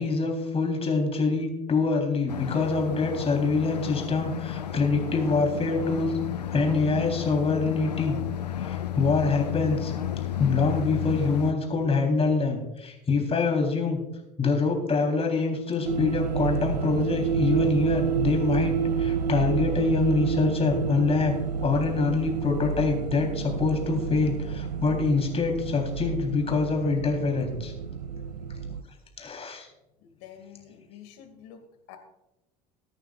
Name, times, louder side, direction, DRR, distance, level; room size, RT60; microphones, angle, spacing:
voice 1, 0.0-6.2 6.5-8.2 8.6-9.9 10.4-14.0 14.4-21.4 21.6-27.7 29.2-29.7, left 4 dB, 30° left, 2 dB, 3.7 m, -25 dB
sound 1, 2.3-11.5, left 10 dB, 85° left, 0.6 m, -32 dB
sound 2, 15.8-28.8, right 7 dB, 90° right, 0.5 m, -29 dB
voice 2, 30.0-31.6 31.9-32.0, left 9 dB, 60° left, 5 dB, 2.4 m, -48 dB
21.5 x 9.1 x 2.5 m, 0.97 s
figure-of-eight pair, 65°, 21 cm